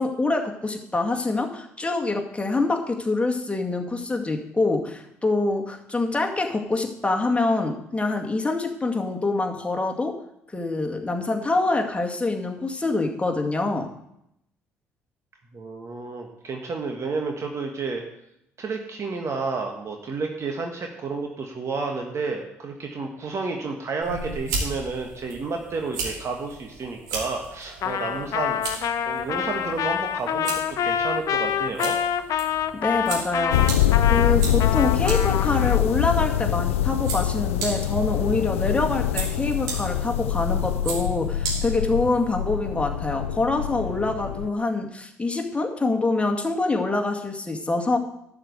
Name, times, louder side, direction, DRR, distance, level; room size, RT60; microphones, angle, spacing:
voice 1, 0.0-10.2 10.5-13.9 32.7-33.7 34.1-48.0, left 3 dB, 15° left, 2 dB, 2.1 m, -25 dB
voice 2, 15.5-18.0 18.6-32.0, right 4 dB, 40° right, 2 dB, 1.6 m, -31 dB
sound 1, 24.0-42.4, right 4 dB, 65° right, 2.7 m, -36 dB
Trumpet, 27.8-35.8, left 8 dB, 55° left, 0.8 m, -26 dB
sound 2, 33.5-44.5, left 11 dB, 80° left, 0.4 m, -24 dB
12.0 x 5.1 x 8.1 m, 0.79 s
figure-of-eight pair, 50°, 7 cm